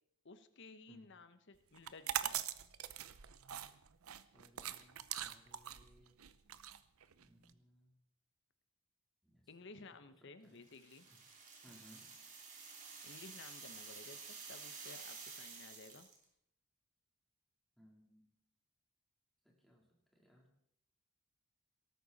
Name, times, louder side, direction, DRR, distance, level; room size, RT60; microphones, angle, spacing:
voice 1, 0.2-2.4 9.5-11.1 13.0-14.2 14.5-16.1, left 3 dB, 55° left, 11 dB, 1.0 m, -55 dB
sound 1, 1.8-7.5, right 11 dB, 80° right, 0.7 m, -42 dB
voice 2, 4.3-6.2 7.2-7.9 9.2-9.5 9.8-9.9 10.2-10.6 11.1-11.2 11.6-12.1 17.8-18.3 19.4-20.5, equal, ahead, -2 dB, 3.5 m, -65 dB
sound 2, 10.7-16.2, right 5 dB, 35° right, 3.3 m, -51 dB
18.0 x 13.5 x 4.1 m, 0.72 s
head